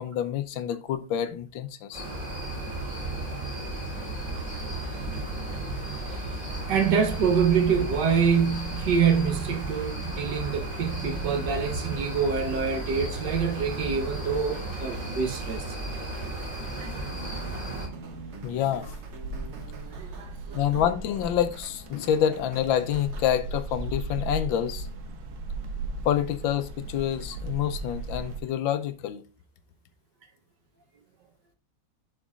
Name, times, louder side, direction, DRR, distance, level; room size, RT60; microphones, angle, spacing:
voice 1, 0.0-2.1 18.4-18.9 20.5-24.9 26.0-29.2, left 10 dB, 75° left, 1.3 m, -27 dB
sound 1, 1.9-17.9, right 1 dB, 25° right, 3.0 m, -34 dB
sound 2, 4.3-23.3, right 5 dB, 50° right, 0.9 m, -44 dB
voice 2, 6.7-15.8 16.8-16.9 19.9-20.6, right 6 dB, 65° right, 1.4 m, -26 dB
sound 3, 17.9-28.4, right 2 dB, 80° right, 1.8 m, -37 dB
11.0 x 5.1 x 2.4 m
omnidirectional pair, 2.2 m